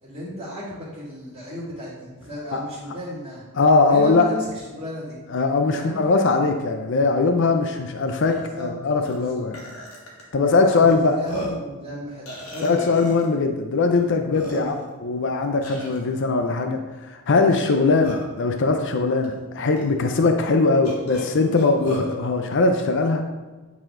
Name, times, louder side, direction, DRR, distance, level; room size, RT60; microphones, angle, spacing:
voice 1, 0.0-3.4 3.9-5.2 5.7-6.0 8.6-9.4 10.7-12.3 12.5-13.0 14.5-14.8, equal, 25° right, -13 dB, 2.2 m, -34 dB
voice 2, 3.6-4.3 5.3-9.6 10.3-11.2 12.6-14.7 15.0-23.2, left 3 dB, 55° left, 5 dB, 0.5 m, -20 dB
Burping eructation, 7.8-7.9 8.2-8.4 9.1-9.2 9.5-10.2 10.9-11.0 11.2-11.7 12.3-13.3 13.9-14.0 14.3-14.9 15.6-16.0 17.5-18.4 19.2-19.3 19.8-19.9 20.8-22.1, equal, 85° left, 2.0 m, -34 dB
9.1 x 4.2 x 3.8 m, 1.3 s
head